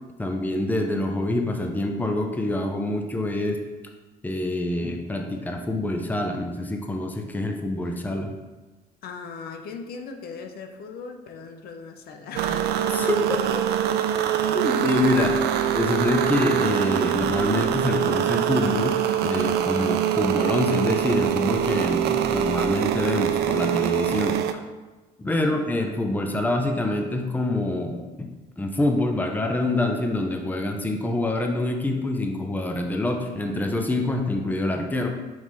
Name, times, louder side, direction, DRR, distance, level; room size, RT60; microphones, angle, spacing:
voice 1, 0.2-3.6 4.2-8.3 12.9-13.4 14.5-15.4 15.7-18.9 19.2-24.4 25.2-28.3 28.6-35.1, left 2 dB, 10° left, 3 dB, 0.7 m, -26 dB
voice 2, 9.0-12.7 13.0-13.6 15.5-15.7 19.8-19.9 25.3-25.6, left 5 dB, 65° left, 4 dB, 0.8 m, -39 dB
sound 1, 12.3-24.5, right 10 dB, 75° right, 0.4 m, -24 dB
5.7 x 4.8 x 4.1 m, 1.2 s
cardioid pair, 110°, 17 cm